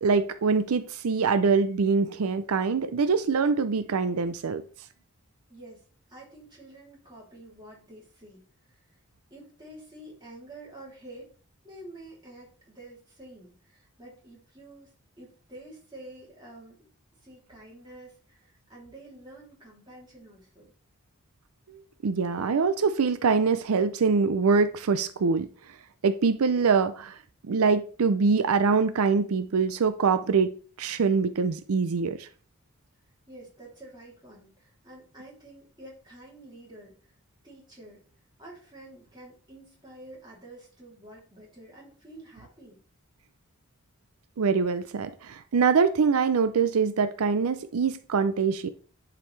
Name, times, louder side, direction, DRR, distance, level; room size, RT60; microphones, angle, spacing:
voice 1, 0.0-4.6 21.7-25.8 26.0-27.2 27.5-30.5 30.8-32.3 44.4-48.7, right 5 dB, 85° right, 0.5 m, -24 dB
voice 2, 5.5-8.9 9.3-11.3 11.6-16.8 17.2-20.7 33.3-37.1 37.4-38.0 38.4-42.8, right 1 dB, 20° right, 3.1 m, -48 dB
10.5 x 4.9 x 3.3 m
head